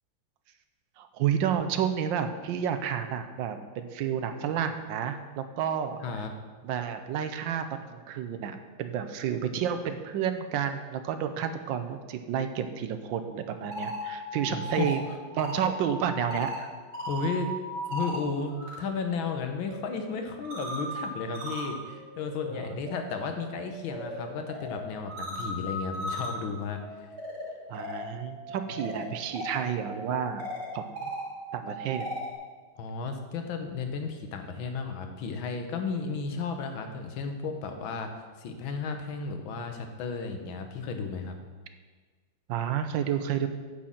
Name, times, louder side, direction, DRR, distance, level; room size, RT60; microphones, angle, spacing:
voice 1, 1.0-6.0 6.6-15.0 15.3-16.7 22.6-22.7 27.7-30.5 30.7-31.1 31.5-32.1 42.5-43.5, right 8 dB, 80° right, 8 dB, 1.3 m, -30 dB
sound 1, 13.5-18.8 19.1-32.3, equal, 55° right, 2.2 m, -38 dB
voice 2, 14.5-14.9 17.1-17.5 17.9-27.1 32.8-38.1 38.4-41.3, left 4 dB, 85° left, 5 dB, 1.7 m, -34 dB
8.7 x 4.3 x 7.2 m, 1.4 s
omnidirectional pair, 2.1 m